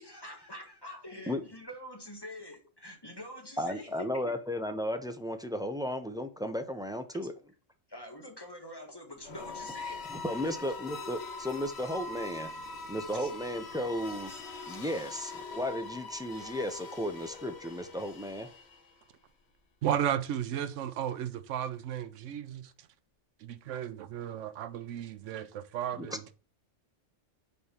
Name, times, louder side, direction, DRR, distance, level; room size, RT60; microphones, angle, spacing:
voice 1, 0.0-4.2 7.9-10.0 10.4-10.6 13.1-13.3, left 1 dB, 20° left, 1.5 m, -46 dB
voice 2, 3.6-7.3 10.1-12.5 12.9-14.4 14.7-18.5 26.0-26.2, equal, 5° right, 0.4 m, -34 dB
sound 1, 9.2-19.1, left 3 dB, 60° left, 1.2 m, -43 dB
voice 3, 19.8-22.9 23.4-26.2, right 10 dB, 80° right, 1.0 m, -34 dB
5.5 x 4.1 x 5.8 m
omnidirectional pair, 1.3 m